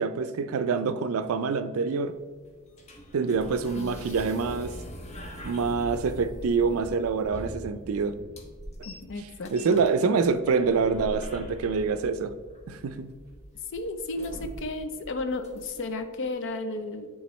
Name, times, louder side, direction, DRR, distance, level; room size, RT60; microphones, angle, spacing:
voice 1, 0.0-2.2 3.1-4.7 5.4-8.2 9.5-12.3 12.7-13.1, right 5 dB, 75° right, 12 dB, 0.4 m, -26 dB
sound 1, 2.0-16.0, equal, 30° left, 0.8 m, -43 dB
voice 2, 8.8-10.2 13.7-17.1, left 2 dB, 60° left, 8 dB, 0.5 m, -34 dB
8.8 x 3.7 x 3.1 m, 1.5 s
head